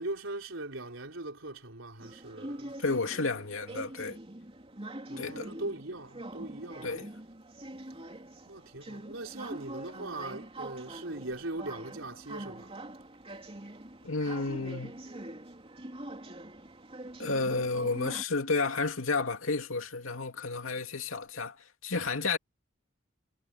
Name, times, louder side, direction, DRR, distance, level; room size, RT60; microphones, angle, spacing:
voice 1, 0.0-2.8 5.1-7.0 8.5-12.8, right 2 dB, 75° right, 4.1 m, -40 dB
sound 1, 2.0-18.2, right 1 dB, 30° right, 3.1 m, -44 dB
voice 2, 2.8-4.2 5.2-5.5 6.8-7.1 14.0-15.0 17.2-22.4, left 3 dB, 85° left, 2.6 m, -31 dB
head